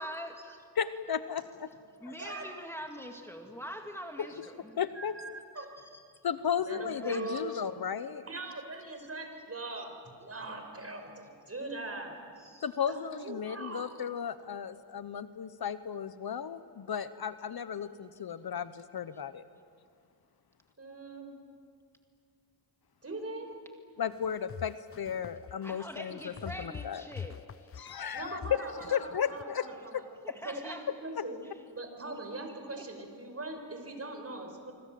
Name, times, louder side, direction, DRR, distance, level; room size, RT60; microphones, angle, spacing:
voice 1, 0.0-0.6 2.0-4.8 5.6-5.9 7.0-7.3 12.4-12.7 25.6-27.7 30.2-30.9 32.4-32.8, equal, 5° left, 3 dB, 2.1 m, -44 dB
voice 2, 0.8-1.7 2.1-2.2 4.8-5.1 6.2-8.3 12.6-19.4 24.0-27.0 27.8-28.4 28.9-29.6, left 8 dB, 60° left, 13 dB, 1.0 m, -35 dB
voice 3, 2.2-2.5 4.9-5.7 6.6-7.6 8.2-12.2 12.9-13.9 20.8-21.3 23.0-23.5 28.1-30.0 30.4-31.4 31.7-34.7, right 2 dB, 35° right, 5 dB, 5.1 m, -41 dB
sound 1, 24.1-29.4, left 7 dB, 35° left, 0.6 m, -44 dB
25.5 x 25.0 x 7.7 m, 2.2 s
cardioid pair, 80°, 42 cm